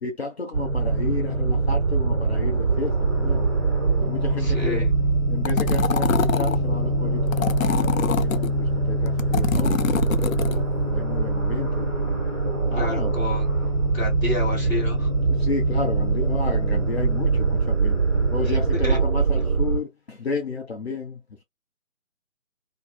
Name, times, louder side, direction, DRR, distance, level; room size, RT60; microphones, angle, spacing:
voice 1, 0.0-3.5 4.0-4.9 5.3-10.2 10.9-11.9 12.7-13.1 15.3-18.0 18.3-21.2, left 4 dB, 50° left, 0.8 m, -32 dB
sound 1, 0.5-19.8, right 3 dB, 25° right, 1.3 m, -23 dB
sound 2, 2.7-18.8, left 8 dB, 30° left, 1.4 m, -46 dB
voice 2, 4.4-4.9 12.7-13.4 13.9-15.1 18.8-19.0, left 2 dB, 10° left, 1.5 m, -29 dB
sound 3, 5.5-6.6 7.3-8.5 9.1-10.6, left 7 dB, 80° left, 0.5 m, -25 dB
2.6 x 2.6 x 2.2 m
figure-of-eight pair, 145°, 41 cm